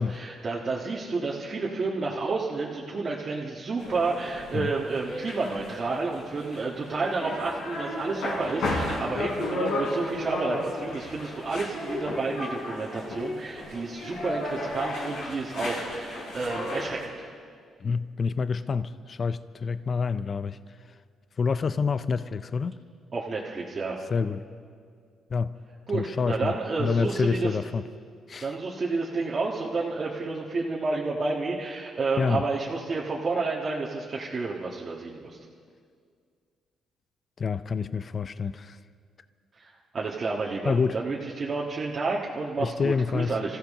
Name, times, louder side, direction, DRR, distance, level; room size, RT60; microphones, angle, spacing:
voice 1, 0.0-17.3 23.1-24.0 25.9-27.5 28.4-35.4 39.5-43.6, right 3 dB, 40° right, -4 dB, 1.6 m, -30 dB
sound 1, 3.8-17.0, left 1 dB, 85° left, 5.2 m, -33 dB
voice 2, 17.8-20.6 21.4-22.7 24.1-24.4 25.3-25.6 25.9-26.5 26.8-27.8 28.3-28.5 32.2-32.4 37.4-38.8 40.6-41.0 42.6-43.4, left 5 dB, 40° left, 14 dB, 0.5 m, -27 dB
25.5 x 15.0 x 3.7 m, 2.1 s
cardioid pair, 90°, 0 cm